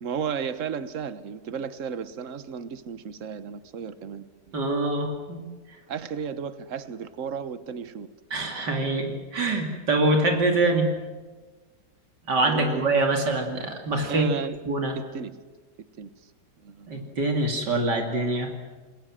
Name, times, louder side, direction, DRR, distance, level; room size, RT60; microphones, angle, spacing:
voice 1, 0.0-4.5 5.9-8.1 12.4-12.8 14.1-14.7 14.9-15.4 16.0-16.1 16.6-17.0, right 7 dB, 50° right, 12 dB, 1.5 m, -34 dB
voice 2, 4.5-5.5 8.3-10.9 12.3-14.3 14.7-14.9 16.9-18.5, right 2 dB, 80° right, 3 dB, 3.3 m, -24 dB
27.0 x 21.0 x 7.6 m, 1.3 s
omnidirectional pair, 1.8 m